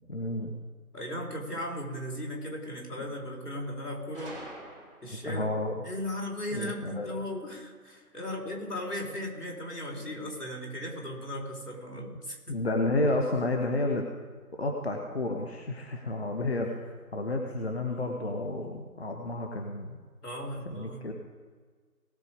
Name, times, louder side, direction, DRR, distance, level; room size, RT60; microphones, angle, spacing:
voice 1, 0.1-0.5 5.3-5.8 6.5-7.1 12.5-14.1 14.5-20.0 20.7-21.1, left 2 dB, 45° left, 3 dB, 1.2 m, -31 dB
voice 2, 0.9-4.3 5.0-5.4 5.8-12.5 20.2-21.1, left 1 dB, 85° left, 0 dB, 4.1 m, -37 dB
Gunshot gunfire, 4.1-5.4, right 1 dB, 35° right, 3.7 m, -45 dB
19.0 x 6.8 x 5.0 m, 1.5 s
figure-of-eight pair, 165°, 46 cm